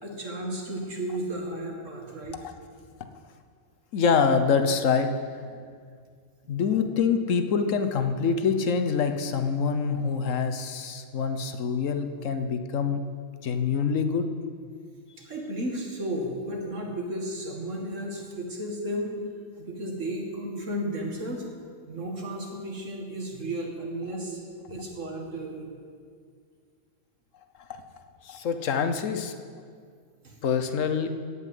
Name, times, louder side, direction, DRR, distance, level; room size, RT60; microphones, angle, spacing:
voice 1, 0.0-2.5 5.5-5.7 6.7-6.8 15.2-19.2 19.6-21.5 21.9-24.4 24.7-25.7 30.2-30.4, right 1 dB, 80° right, 1 dB, 2.4 m, -33 dB
voice 2, 3.9-5.1 6.5-13.0 13.4-14.3 27.7-27.8 28.2-29.3 30.4-31.1, left 6 dB, 90° left, 8 dB, 1.3 m, -25 dB
16.0 x 5.7 x 9.4 m, 2.1 s
omnidirectional pair, 1.3 m